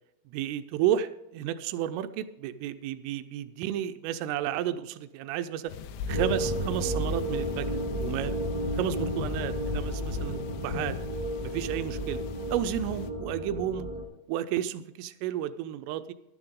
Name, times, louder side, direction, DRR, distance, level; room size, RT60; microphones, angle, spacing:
voice 1, 0.3-5.7 6.1-7.7 8.0-8.5 8.7-11.0 11.4-12.2 12.5-13.9 14.3-16.1, right 11 dB, 85° right, 11 dB, 3.0 m, -32 dB
sound 1, 5.7-13.1, left 7 dB, 85° left, 3.4 m, -38 dB
sound 2, 6.1-14.0, right 1 dB, 30° right, 0.6 m, -32 dB
13.5 x 12.0 x 3.6 m, 0.89 s
omnidirectional pair, 5.9 m